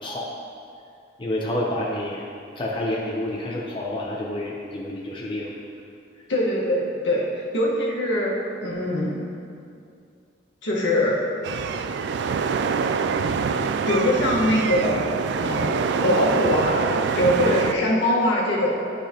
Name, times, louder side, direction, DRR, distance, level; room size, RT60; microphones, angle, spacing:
voice 1, 0.0-0.3 1.2-2.3 2.6-5.6, left 1 dB, 30° left, -3 dB, 0.6 m, -29 dB
voice 2, 6.3-8.3 8.6-9.2 10.6-11.3 11.7-11.8 13.8-15.0 15.4-18.8, left 1 dB, 75° left, -5 dB, 1.4 m, -22 dB
sound 1, 11.4-17.7, right 5 dB, 65° right, 0.3 m, -25 dB
11.0 x 5.0 x 2.9 m, 2.4 s
head